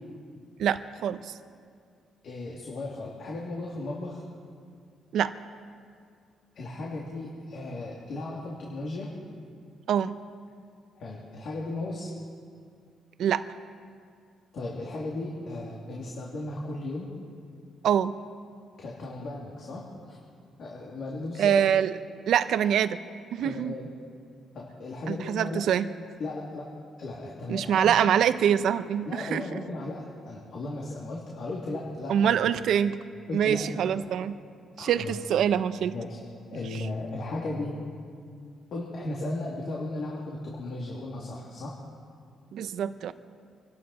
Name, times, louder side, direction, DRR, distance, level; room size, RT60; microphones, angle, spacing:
voice 1, 0.6-1.3 5.1-5.3 9.9-10.2 13.2-13.5 17.8-18.1 21.4-21.9 22.3-23.0 23.3-23.8 25.1-25.9 27.5-29.4 32.1-32.9 33.3-34.4 34.8-35.9 42.5-43.1, right 9 dB, 75° right, 12 dB, 0.7 m, -24 dB
voice 2, 2.2-4.2 6.5-9.1 10.9-12.1 14.5-17.1 18.8-20.2 20.6-21.6 23.4-23.9 24.5-25.6 26.2-26.7 27.0-28.0 29.0-32.4 33.3-33.8 34.8-35.1 35.9-36.2 36.5-37.7 38.7-41.8, left 2 dB, 65° left, -3 dB, 2.7 m, -36 dB
26.0 x 12.5 x 4.2 m, 2.2 s
cardioid pair, 90°, 0 cm